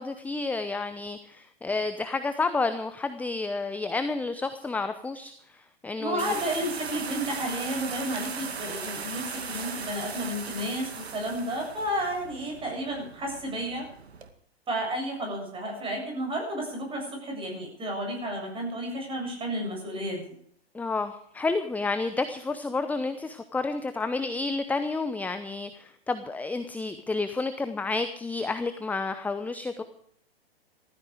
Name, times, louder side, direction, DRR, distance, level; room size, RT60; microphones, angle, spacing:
voice 1, 0.0-6.3 20.7-29.8, left 3 dB, 5° left, 10 dB, 0.8 m, -30 dB
voice 2, 6.0-13.9 14.7-20.2, equal, 15° right, 2 dB, 7.6 m, -32 dB
sound 1, 6.2-14.3, right 5 dB, 75° right, 2.2 m, -38 dB
16.5 x 14.5 x 5.0 m, 0.66 s
hypercardioid pair, 115°, 32 cm